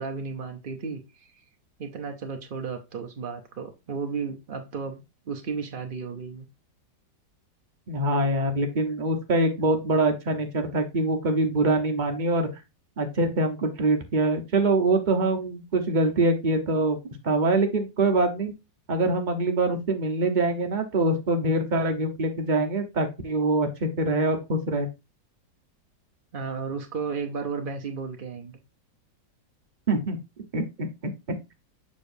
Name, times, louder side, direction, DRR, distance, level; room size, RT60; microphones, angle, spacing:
voice 1, 0.0-1.3 1.8-6.4 26.3-28.6, right 5 dB, 80° right, 0.4 m, -34 dB
voice 2, 7.9-12.5 13.0-18.5 18.9-24.9 29.9-30.2 30.5-31.1, right 2 dB, 35° right, 0.8 m, -24 dB
6.8 x 6.0 x 2.6 m
omnidirectional pair, 2.0 m